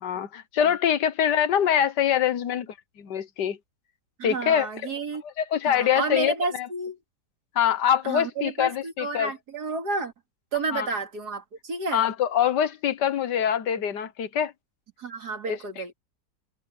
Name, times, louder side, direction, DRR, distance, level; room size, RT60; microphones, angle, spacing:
voice 1, 0.0-3.6 4.2-4.7 5.2-6.7 7.6-9.3 10.7-10.9 11.9-14.5 15.5-15.8, left 9 dB, 70° left, 1.7 m, -24 dB
voice 2, 4.2-5.2 5.7-7.0 8.0-10.1 10.5-12.0 15.0-15.9, right 3 dB, 65° right, 2.9 m, -31 dB
omnidirectional pair, 1.9 m